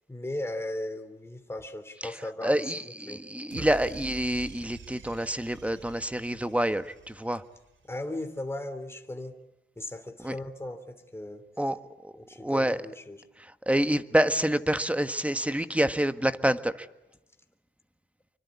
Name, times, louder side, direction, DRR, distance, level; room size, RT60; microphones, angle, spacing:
voice 1, 0.1-2.5 3.1-3.2 3.5-3.7 7.9-9.4 9.8-11.4 12.2-13.2, left 1 dB, 10° left, 6 dB, 3.1 m, -37 dB
voice 2, 2.4-7.4 10.2-10.3 11.6-12.8 13.4-16.9, right 1 dB, 5° right, 10 dB, 1.6 m, -27 dB
sound 1, 3.5-7.8, right 5 dB, 70° right, 2.7 m, -47 dB
27.5 x 24.5 x 8.4 m, 0.97 s
cardioid pair, 75°, 20 cm